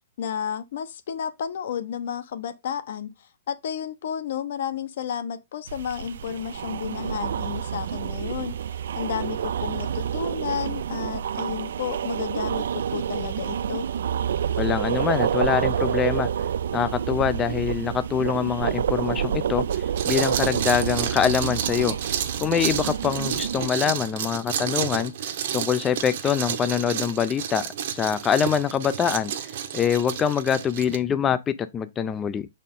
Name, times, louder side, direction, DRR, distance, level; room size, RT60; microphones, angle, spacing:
voice 1, 0.2-13.9, left 8 dB, 60° left, 0.9 m, -32 dB
sound 1, 5.7-23.7, right 8 dB, 70° right, 0.4 m, -28 dB
voice 2, 14.6-16.3 16.7-22.0 22.4-25.1 25.5-27.6 27.9-29.3 29.7-32.5, left 8 dB, 15° left, 0.3 m, -24 dB
sound 2, 19.7-31.0, right 9 dB, 50° right, 0.9 m, -31 dB
6.3 x 4.2 x 3.6 m
hypercardioid pair, 165°, 0 cm